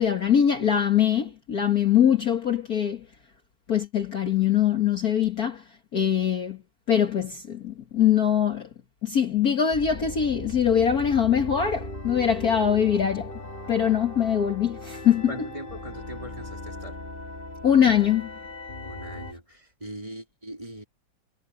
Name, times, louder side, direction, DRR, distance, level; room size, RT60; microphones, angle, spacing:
voice 1, 0.0-3.0 3.7-5.6 5.9-6.6 6.9-8.7 9.0-13.3 13.7-15.3 17.6-18.3, left 9 dB, 45° left, 2.0 m, -22 dB
sound 1, 9.7-19.3, left 1 dB, 25° left, 2.8 m, -38 dB
voice 2, 15.3-17.0 18.8-20.8, right 1 dB, 15° right, 4.1 m, -40 dB
omnidirectional pair, 2.4 m